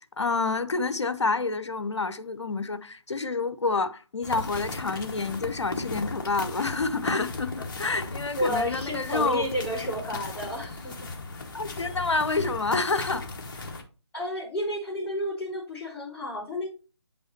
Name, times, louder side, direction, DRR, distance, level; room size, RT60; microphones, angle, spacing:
voice 1, 0.2-9.4 11.5-13.3 13.5-13.7, left 3 dB, 75° left, 0.8 m, -28 dB
sound 1, 4.2-13.8, left 3 dB, 45° left, 1.2 m, -36 dB
voice 2, 8.4-11.0 14.1-16.7, equal, 10° left, 3.5 m, -31 dB
8.2 x 5.5 x 2.9 m
figure-of-eight pair, 150°, 15 cm